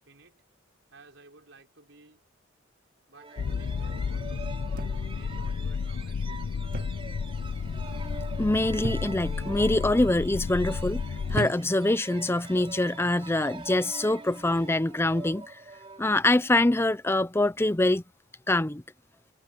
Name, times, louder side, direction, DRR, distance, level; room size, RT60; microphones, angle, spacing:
voice 1, 0.1-0.4 0.9-2.2 3.1-6.5, right 2 dB, 70° right, 6.1 m, -54 dB
sound 1, 3.1-16.6, right 3 dB, 30° right, 3.4 m, -45 dB
sound 2, 3.4-11.4, left 5 dB, 75° left, 0.4 m, -32 dB
sound 3, 4.8-5.3 6.7-7.1 7.4-7.8 8.8-9.4 10.1-10.5 11.3-11.9 12.9-13.2, right 2 dB, 45° right, 0.7 m, -35 dB
voice 2, 8.4-11.0 11.3-15.6 16.0-18.0 18.5-18.8, left 2 dB, 15° left, 0.6 m, -24 dB
head